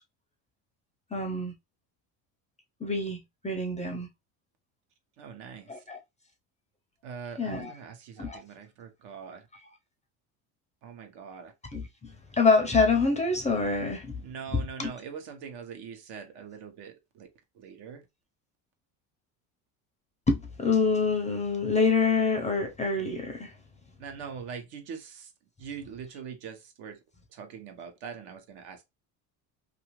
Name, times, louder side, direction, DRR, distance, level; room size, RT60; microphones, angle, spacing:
voice 1, 1.1-1.5 2.8-3.2 3.4-4.1 5.7-6.0 7.4-7.7 8.2-8.4 11.7-14.2 14.5-14.9 20.3-23.5, left 4 dB, 15° left, 0.5 m, -26 dB
voice 2, 5.2-5.7 7.0-9.5 10.8-11.5 14.2-17.3 17.5-18.0 24.0-25.3 25.6-27.0 27.3-28.8, right 6 dB, 65° right, 0.9 m, -42 dB
2.6 x 2.4 x 3.0 m
supercardioid pair, 100°, 44 cm